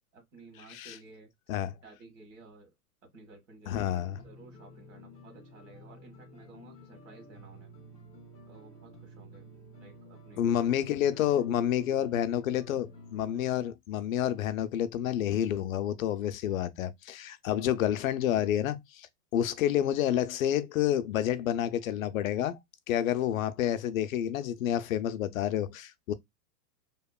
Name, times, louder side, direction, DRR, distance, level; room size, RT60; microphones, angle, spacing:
voice 1, 0.1-1.3 1.8-2.7 3.0-7.7 8.5-9.5 9.8-10.7 11.3-11.4, right 3 dB, 50° right, 1.4 m, -54 dB
voice 2, 3.7-4.2 10.4-19.1 19.3-22.6 22.9-26.1, left 11 dB, 60° left, 0.5 m, -29 dB
sound 1, 3.8-13.6, equal, 5° left, 0.5 m, -51 dB
2.9 x 2.1 x 2.3 m
supercardioid pair, 175°, 47 cm